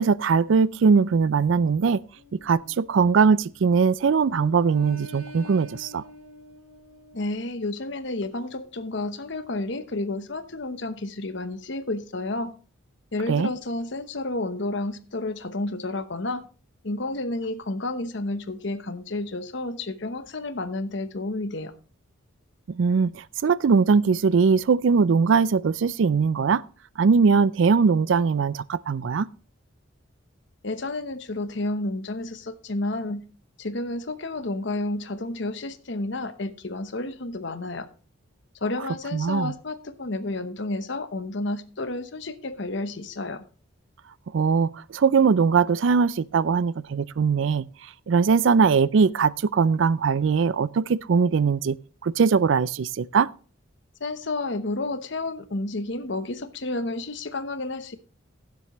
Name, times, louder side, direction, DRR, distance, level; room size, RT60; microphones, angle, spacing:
voice 1, 0.0-2.0 2.4-6.0 13.3-13.5 22.8-23.1 23.4-26.6 27.0-29.3 39.1-39.5 44.3-47.7 48.1-51.8 52.0-53.3, right 5 dB, 65° right, 0.4 m, -21 dB
sound 1, 2.1-3.8 4.2-7.4, left 2 dB, 90° right, 2.1 m, -46 dB
voice 2, 7.1-12.5 13.1-16.4 16.8-21.7 30.6-33.2 33.6-37.9 38.5-43.4 54.0-57.9, left 2 dB, 60° left, 0.9 m, -31 dB
16.0 x 7.6 x 3.1 m
head